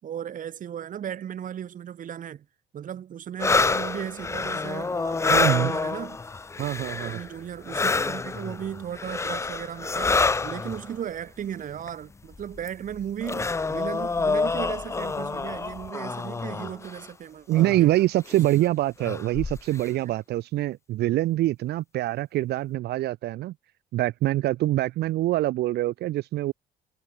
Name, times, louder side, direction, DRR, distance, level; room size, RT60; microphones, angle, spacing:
voice 1, 0.0-2.5 2.7-6.2 7.0-10.1 10.4-17.9 18.3-18.7 19.9-20.1, right 9 dB, 50° right, 5.5 m, -36 dB
sound 1, 3.4-7.4 7.6-10.9 11.9-12.0 12.3-17.0 17.5-17.8 18.3-18.5 19.0-19.8, left 4 dB, 15° left, 0.6 m, -27 dB
voice 2, 5.3-5.8 6.6-7.2 17.5-23.5 23.9-26.5, right 15 dB, 75° right, 3.2 m, -25 dB
cardioid pair, 110°, 17 cm